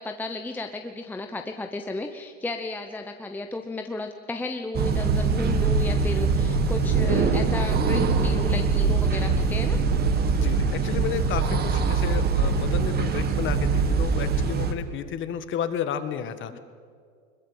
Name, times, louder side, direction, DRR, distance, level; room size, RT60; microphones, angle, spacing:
voice 1, 0.0-9.8 16.5-16.6, left 2 dB, 5° left, 5 dB, 0.8 m, -33 dB
sound 1, 4.7-14.7, right 4 dB, 25° right, 1.8 m, -23 dB
voice 2, 10.3-16.6, left 8 dB, 30° left, 11 dB, 1.6 m, -32 dB
21.5 x 20.5 x 8.0 m, 2.1 s
supercardioid pair, 135°, 38 cm